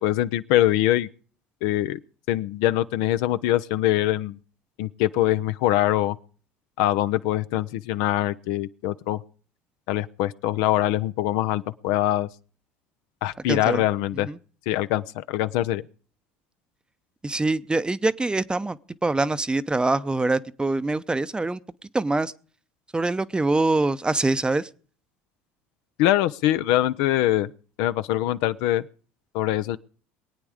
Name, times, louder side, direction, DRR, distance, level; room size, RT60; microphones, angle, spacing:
voice 1, 0.0-1.1 1.6-2.0 2.3-4.4 4.8-6.2 6.8-9.2 9.9-12.3 13.2-14.3 14.7-15.8 26.0-27.5 27.8-28.9 29.3-29.8, left 14 dB, 70° left, 0.6 m, -23 dB
voice 2, 13.5-13.8 14.2-14.4 17.2-21.6 21.9-22.3 22.9-24.7, right 2 dB, 15° right, 0.7 m, -24 dB
22.0 x 8.9 x 4.9 m
hypercardioid pair, 75°, 6 cm